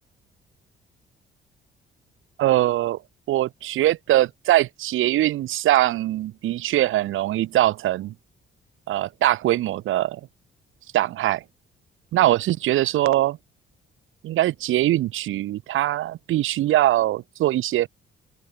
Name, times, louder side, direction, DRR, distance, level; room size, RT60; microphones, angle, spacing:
voice 1, 2.4-3.0 3.3-8.1 8.9-10.2 10.9-11.4 12.1-13.4 14.2-17.9, right 14 dB, 85° right, 5.8 m, -22 dB
open air
cardioid pair, 90°, 20 cm